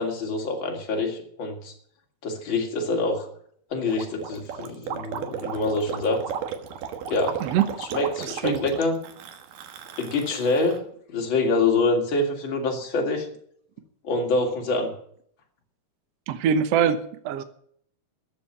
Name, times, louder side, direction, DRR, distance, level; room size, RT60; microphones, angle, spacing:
voice 1, 0.0-1.7 2.2-3.3 3.7-6.2 7.1-7.4 7.9-9.0 10.0-10.8 11.1-13.3 14.0-14.9, left 3 dB, 40° left, 2 dB, 3.1 m, -25 dB
Gurgling, 3.9-10.8, right 8 dB, 80° right, 3.0 m, -34 dB
voice 2, 7.4-7.7 8.2-8.6 16.3-17.4, right 8 dB, 60° right, 11 dB, 1.9 m, -23 dB
14.0 x 7.6 x 10.0 m, 0.63 s
omnidirectional pair, 3.7 m